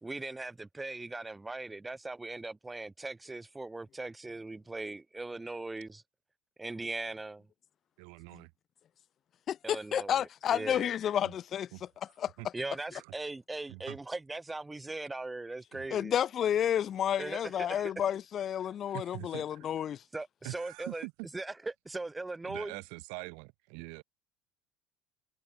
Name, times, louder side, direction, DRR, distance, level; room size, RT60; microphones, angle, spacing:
voice 1, 0.0-6.0 6.6-7.4 9.6-10.9 12.5-16.2 17.2-17.9 20.1-21.1 21.3-22.8, right 2 dB, 15° right, 1.4 m, -39 dB
voice 2, 8.0-8.5 11.2-11.3 11.7-11.8 12.4-12.5 12.9-13.0 13.7-14.0 15.7-15.9 18.9-19.7 20.4-21.1 22.4-24.0, right 40 dB or more, 75° right, 6.2 m, -44 dB
voice 3, 9.5-11.7 12.2-12.3 15.9-20.0, left 9 dB, 45° left, 0.9 m, -31 dB
supercardioid pair, 85°, 0 cm